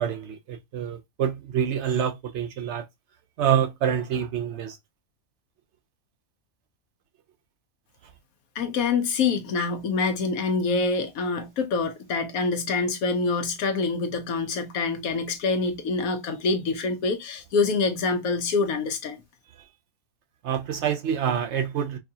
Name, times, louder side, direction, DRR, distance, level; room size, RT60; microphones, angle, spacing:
voice 1, 0.0-2.8 3.4-4.8 20.4-22.0, right 8 dB, 65° right, 0.8 m, -26 dB
voice 2, 8.5-19.2, left 4 dB, 90° left, 1.2 m, -26 dB
4.7 x 2.3 x 2.7 m
omnidirectional pair, 1.4 m